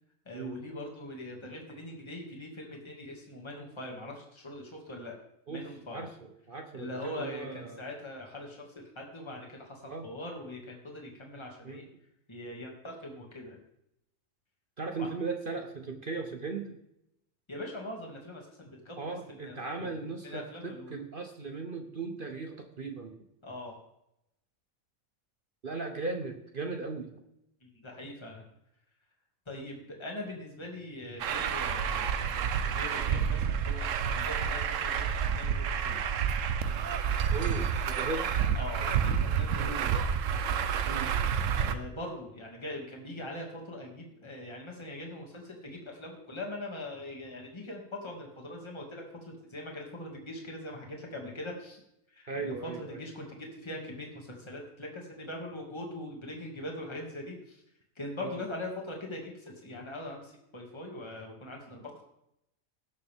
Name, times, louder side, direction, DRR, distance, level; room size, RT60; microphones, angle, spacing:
voice 1, 0.3-5.1 5.5-6.1 6.7-11.8 12.3-13.6 15.0-15.1 17.5-20.0 20.2-21.0 23.4-23.8 27.6-28.5 29.5-32.3 32.6-36.1 38.6-40.0 41.6-51.8 52.1-57.6 58.0-62.0, left 1 dB, 20° left, 0 dB, 2.1 m, -42 dB
voice 2, 5.5-7.8 9.8-10.1 11.6-11.9 14.8-16.8 19.0-23.2 25.6-27.1 37.3-38.4 39.6-39.8 40.9-41.1 52.3-53.0 58.2-58.4, right 4 dB, 45° right, 4 dB, 1.0 m, -37 dB
Truck, 31.2-41.7, right 7 dB, 70° right, 1.1 m, -29 dB
17.5 x 6.6 x 3.6 m, 0.81 s
omnidirectional pair, 1.4 m